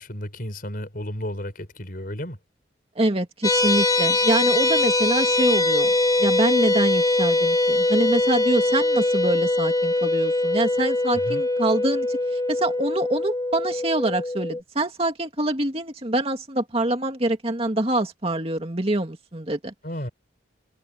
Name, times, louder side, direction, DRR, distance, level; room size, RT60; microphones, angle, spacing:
voice 1, 0.0-2.4 11.1-11.4 19.8-20.1, equal, 50° left, 6.5 m, -33 dB
voice 2, 3.0-5.9 6.2-19.7, right 1 dB, 30° right, 2.4 m, -25 dB
sound 1, 3.4-14.6, left 2 dB, 20° left, 1.9 m, -22 dB
head